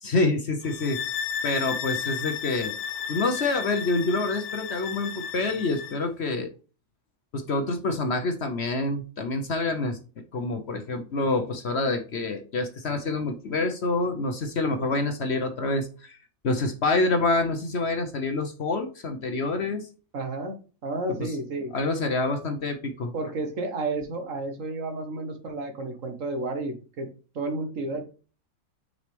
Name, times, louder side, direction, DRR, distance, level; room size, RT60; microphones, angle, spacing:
voice 1, 0.0-1.0 1.4-2.7 3.1-6.5 7.3-10.0 10.3-16.2 16.4-19.9 21.2-21.3 21.7-23.1, left 3 dB, 50° left, 6 dB, 1.0 m, -27 dB
sound 1, 0.6-6.0, left 7 dB, 85° left, 1.2 m, -33 dB
voice 2, 20.1-20.6 20.8-21.7 23.1-27.1 27.3-28.0, right 2 dB, 60° right, 5 dB, 1.6 m, -31 dB
6.3 x 5.3 x 3.3 m, 0.36 s
omnidirectional pair, 1.6 m